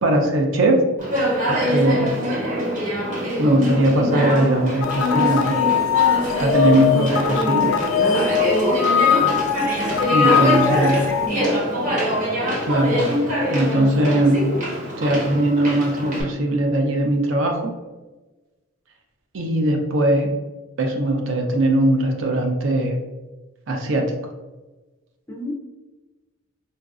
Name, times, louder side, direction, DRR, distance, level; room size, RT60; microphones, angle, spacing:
voice 1, 0.0-0.8 1.5-2.1 3.4-5.5 6.4-7.7 10.1-11.0 12.6-13.0 13.5-14.5 15.0-17.8 19.3-20.3 20.8-23.0 23.7-24.1, right 1 dB, 65° right, 2 dB, 0.5 m, -20 dB
Conversation, 1.0-16.2, equal, 40° right, 0.9 m, -24 dB
sound 1, 4.8-11.3, left 8 dB, 80° left, 0.3 m, -21 dB
voice 2, 9.0-9.7 10.5-11.7 25.3-25.5, left 2 dB, 10° left, 0 dB, 0.4 m, -30 dB
4.0 x 2.5 x 2.4 m, 1.2 s
head